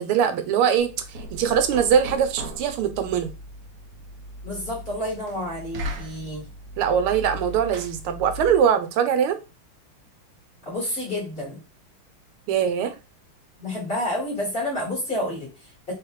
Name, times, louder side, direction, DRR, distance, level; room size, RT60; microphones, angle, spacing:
voice 1, 0.0-3.3 6.8-9.4 12.5-12.9, right 8 dB, 90° right, 9 dB, 1.6 m, -22 dB
Knock, 0.8-8.7, equal, 70° right, 0.8 m, -38 dB
voice 2, 4.4-6.4 10.6-11.6 13.6-15.9, left 1 dB, 25° left, -3 dB, 2.0 m, -29 dB
4.1 x 3.2 x 3.1 m, 0.29 s
omnidirectional pair, 2.4 m